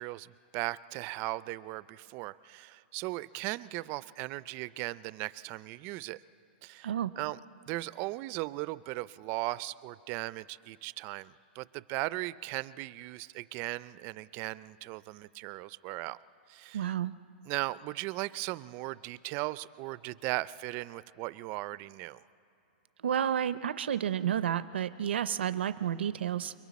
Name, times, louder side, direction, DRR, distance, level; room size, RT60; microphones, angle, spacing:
voice 1, 0.0-6.2 6.6-7.4 7.7-16.2 16.5-16.9 17.5-22.2, right 20 dB, 35° right, 18 dB, 0.4 m, -37 dB
voice 2, 6.8-7.1 16.7-17.1 23.0-26.5, right 9 dB, 90° right, 14 dB, 0.5 m, -31 dB
28.5 x 22.5 x 4.1 m, 2.7 s
hypercardioid pair, 145°, 6 cm